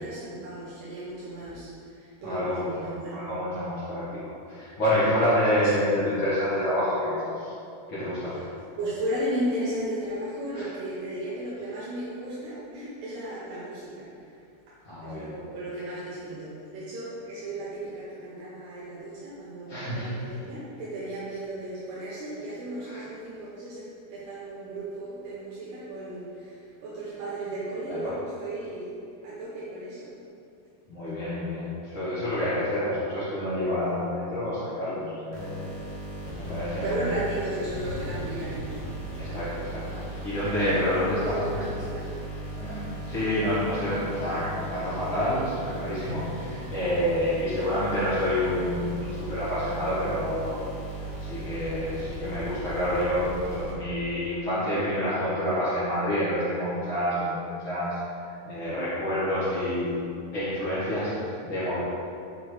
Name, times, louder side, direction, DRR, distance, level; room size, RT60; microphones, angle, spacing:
voice 1, 0.0-3.3 5.6-5.7 8.8-14.1 15.0-28.9 29.2-30.1 36.8-38.9 41.0-42.0, right 1 dB, 75° right, -9 dB, 2.9 m, -35 dB
voice 2, 2.2-7.5 7.9-8.5 10.5-10.7 14.8-15.3 19.7-20.1 22.8-23.1 27.9-28.1 30.9-35.7 36.3-37.0 39.2-41.6 42.5-50.7 51.2-57.9 58.2-61.8, left 1 dB, 85° left, -12 dB, 1.1 m, -28 dB
sound 1, 35.3-54.1, right 1 dB, 55° left, 1.5 m, -37 dB
8.3 x 5.1 x 3.2 m, 2.4 s
omnidirectional pair, 4.9 m